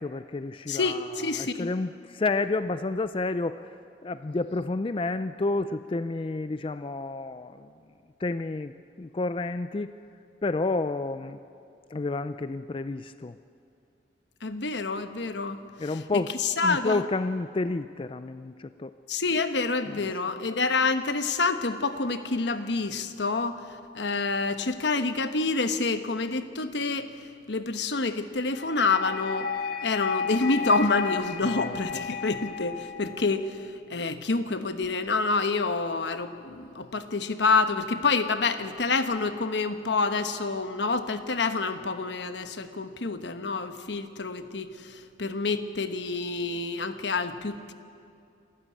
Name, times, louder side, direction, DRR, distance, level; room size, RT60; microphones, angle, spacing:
voice 1, 0.0-3.6 4.0-7.7 8.2-9.9 10.4-11.4 11.9-13.3 15.8-18.9 19.9-20.1 31.4-31.8, left 3 dB, 30° left, 12 dB, 0.4 m, -30 dB
voice 2, 0.7-1.7 14.4-15.6 16.1-17.0 19.1-23.6 23.9-27.1 27.5-29.5 29.8-33.6 33.9-44.7 45.2-47.7, left 3 dB, 75° left, 9 dB, 1.1 m, -27 dB
sound 1, 28.5-33.5, left 6 dB, 60° left, 1.3 m, -34 dB
27.5 x 13.0 x 8.5 m, 2.5 s
head